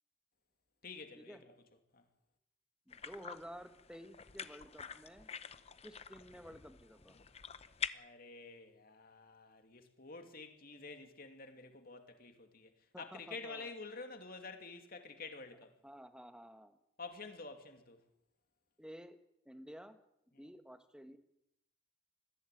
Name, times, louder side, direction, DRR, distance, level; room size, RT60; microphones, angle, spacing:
voice 1, 0.8-1.5 1.9-2.0 7.9-15.7 17.0-18.0, left 3 dB, 45° left, 2.6 m, -49 dB
sound 1, 2.9-7.9, left 6 dB, 30° left, 0.9 m, -46 dB
voice 2, 2.9-5.3 5.8-7.2 12.9-13.7 15.8-16.8 18.8-19.2 19.4-20.0 20.4-21.2, equal, 5° right, 1.4 m, -52 dB
22.0 x 15.0 x 9.2 m
head